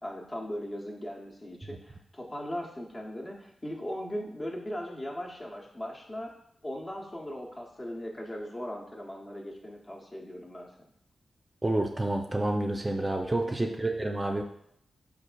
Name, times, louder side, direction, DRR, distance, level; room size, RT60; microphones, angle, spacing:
voice 1, 0.0-6.3 6.6-10.9 13.4-13.6, equal, 35° left, -2 dB, 0.7 m, -38 dB
voice 2, 11.6-14.4, right 1 dB, 25° right, 3 dB, 0.4 m, -29 dB
3.9 x 2.5 x 2.2 m, 0.72 s
supercardioid pair, 40°, 0 cm